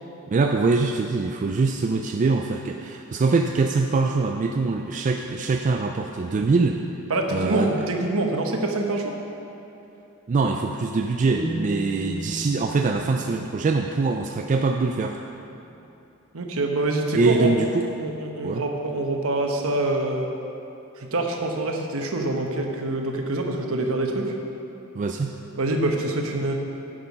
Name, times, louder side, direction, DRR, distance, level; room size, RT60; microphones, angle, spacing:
voice 1, 0.3-6.8 7.3-7.8 10.3-15.2 17.1-17.9 18.4-18.6 24.9-25.3, right 3 dB, 35° right, 3 dB, 0.3 m, -23 dB
voice 2, 7.1-9.2 16.3-17.5 18.0-20.3 21.0-24.3 25.6-26.5, right 2 dB, 65° right, 2 dB, 1.1 m, -25 dB
sound 1, 11.4-14.5, right 1 dB, ahead, 2.4 m, -35 dB
9.5 x 6.7 x 5.3 m, 2.9 s
head